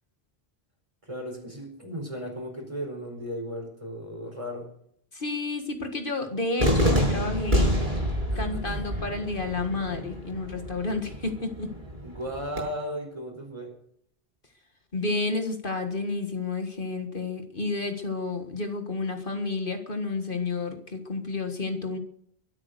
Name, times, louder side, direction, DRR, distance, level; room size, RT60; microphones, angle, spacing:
voice 1, 1.0-4.7 8.3-8.8 12.0-13.7, equal, 30° right, 3 dB, 4.5 m, -36 dB
voice 2, 5.1-7.7 8.4-11.8 14.9-22.0, left 3 dB, 55° left, 6 dB, 1.9 m, -30 dB
Cheering / Fireworks, 6.6-12.6, equal, 50° right, 6.9 m, -28 dB
23.0 x 8.7 x 6.6 m, 0.70 s
omnidirectional pair, 1.1 m